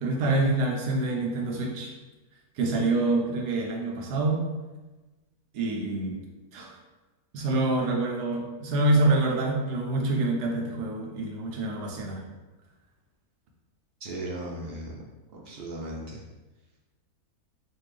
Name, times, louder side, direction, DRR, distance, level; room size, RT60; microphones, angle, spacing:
voice 1, 0.0-1.9 2.6-4.4 5.5-6.2 6.5-6.8 7.3-12.2, right 2 dB, 85° right, 1 dB, 1.3 m, -26 dB
voice 2, 14.0-14.9 15.3-16.2, right 1 dB, 60° right, -3 dB, 0.6 m, -36 dB
4.1 x 2.6 x 3.2 m, 1.2 s
omnidirectional pair, 1.7 m